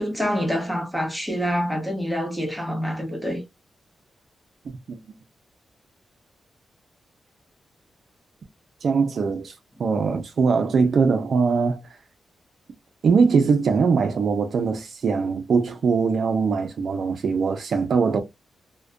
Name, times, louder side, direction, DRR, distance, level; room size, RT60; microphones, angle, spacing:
voice 1, 0.0-3.4, equal, ahead, 0.8 m, -26 dB
voice 2, 8.8-9.5 9.8-11.8 13.0-18.2, right 5 dB, 60° right, 0.4 m, -21 dB
2.4 x 2.2 x 2.4 m
wide cardioid pair, 135°, 0 cm